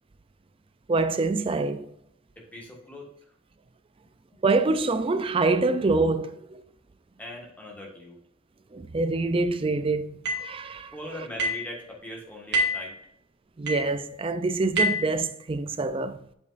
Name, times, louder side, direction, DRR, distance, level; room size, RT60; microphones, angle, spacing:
voice 1, 0.9-1.9 4.4-6.6 8.7-10.9 13.6-16.2, right 3 dB, 25° right, 0.3 m, -25 dB
voice 2, 2.5-3.1 7.2-8.2 10.9-12.9, left 1 dB, 5° left, 1.5 m, -40 dB
sound 1, 10.3-10.5 11.4-11.7 12.5-12.9 13.7-13.9 14.8-15.1, equal, 50° right, 2.0 m, -26 dB
8.0 x 5.3 x 2.5 m
head